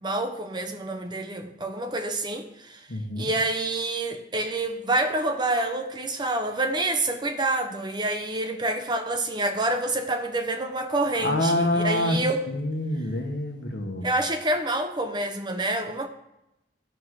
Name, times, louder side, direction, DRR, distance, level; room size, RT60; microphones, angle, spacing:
voice 1, 0.0-2.9 3.2-12.4 14.0-16.1, right 2 dB, 25° right, 0.8 m, -27 dB
voice 2, 2.9-3.3 11.2-12.2 12.5-14.1, left 1 dB, 60° left, 1.4 m, -26 dB
13.0 x 5.3 x 4.8 m
head